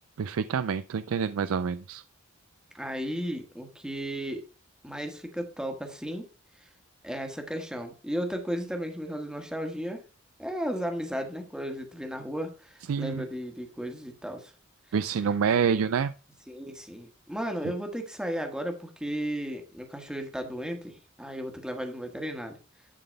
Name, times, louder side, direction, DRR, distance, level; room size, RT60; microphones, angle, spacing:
voice 1, 0.2-2.0 12.9-13.2 14.9-16.1, right 6 dB, 90° right, 14 dB, 0.4 m, -27 dB
voice 2, 2.7-4.4 4.8-6.3 6.6-6.7 7.0-10.0 10.4-14.5 16.5-22.6, equal, 5° right, 4 dB, 1.3 m, -34 dB
11.0 x 4.0 x 5.2 m, 0.34 s
head